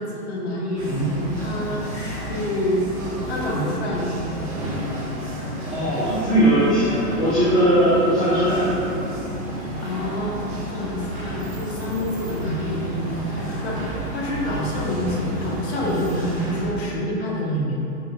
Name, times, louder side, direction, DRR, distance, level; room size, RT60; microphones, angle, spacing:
voice 1, 0.0-2.8 3.3-4.2 9.8-17.8, equal, 40° left, -3 dB, 1.5 m, -27 dB
sound 1, 0.8-16.7, equal, 15° right, 1.4 m, -31 dB
voice 2, 5.7-8.8, right 1 dB, ahead, -19 dB, 1.5 m, -19 dB
10.5 x 6.3 x 2.6 m, 2.7 s
hypercardioid pair, 165°, 49 cm